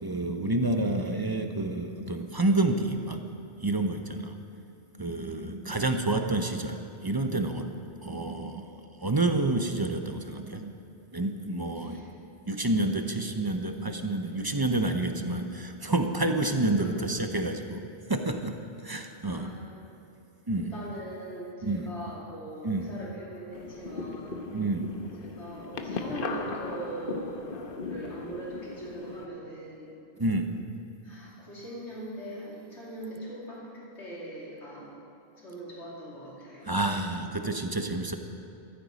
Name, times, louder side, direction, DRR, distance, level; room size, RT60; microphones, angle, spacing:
voice 1, 0.0-3.2 3.6-4.4 5.0-7.7 8.0-8.7 9.0-10.7 11.1-12.1 12.5-18.6 18.8-19.5 20.5-20.7 21.6-21.9 22.6-22.9 24.5-24.9 30.2-30.6 36.6-38.2, right 2 dB, 25° right, 6 dB, 0.6 m, -29 dB
voice 2, 11.8-12.1 16.8-17.0 19.3-19.9 20.6-24.4 25.2-29.9 31.0-34.9 35.4-36.7, right 1 dB, 85° left, -6 dB, 3.1 m, -41 dB
sound 1, 23.5-29.3, left 4 dB, 55° left, 1.0 m, -38 dB
14.0 x 14.0 x 4.1 m, 2.7 s
omnidirectional pair, 1.1 m